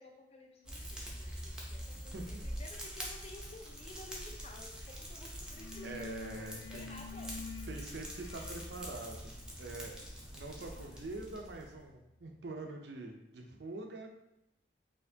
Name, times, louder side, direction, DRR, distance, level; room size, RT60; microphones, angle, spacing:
voice 1, 0.0-7.4 9.2-9.3, left 2 dB, 35° left, 2 dB, 0.5 m, -53 dB
Fire, 0.6-11.8, equal, 5° right, 0.6 m, -45 dB
sound 1, 4.8-5.1 5.3-12.0, left 6 dB, 90° left, 0.3 m, -51 dB
voice 2, 5.8-6.9 7.7-9.2 9.6-9.9 10.4-14.2, right 2 dB, 70° right, 3 dB, 0.6 m, -44 dB
4.2 x 3.0 x 2.8 m, 0.87 s
head